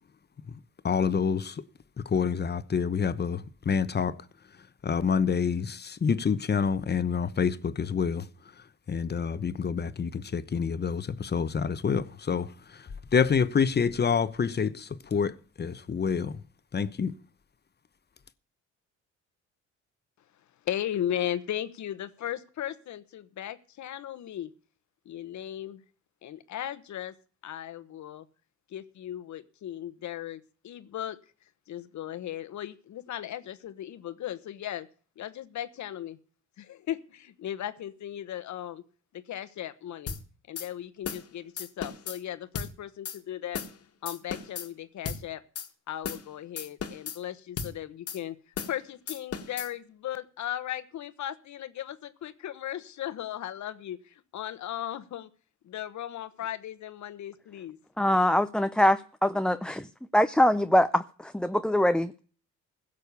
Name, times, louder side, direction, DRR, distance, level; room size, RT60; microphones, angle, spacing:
voice 1, 0.8-1.6 2.0-4.2 4.8-8.3 8.9-16.4 16.7-17.1, left 6 dB, 35° left, 1.0 m, -27 dB
voice 2, 20.6-24.5 25.0-25.8 26.2-27.1 27.4-28.3 28.7-31.2 31.7-34.9 35.2-36.2 36.6-38.8 39.1-40.2 40.5-43.6 44.0-45.4 45.9-48.4 48.7-55.3 55.6-57.8, left 11 dB, 70° left, 1.3 m, -37 dB
sound 1, 40.1-40.2 40.6-40.7 41.1-41.3 41.6-42.2 42.6-42.7 43.1-43.2 43.5-43.8 44.1-44.7 45.1-45.2 45.6-45.7 46.0-46.3 46.6-47.2 47.6-47.7 48.1-48.2 48.6-48.8 49.1-49.7, left 6 dB, 50° left, 1.8 m, -35 dB
voice 3, 58.0-59.9 60.1-62.2, left 1 dB, 5° left, 0.5 m, -23 dB
16.0 x 6.6 x 6.9 m
cardioid pair, 90°, 30 cm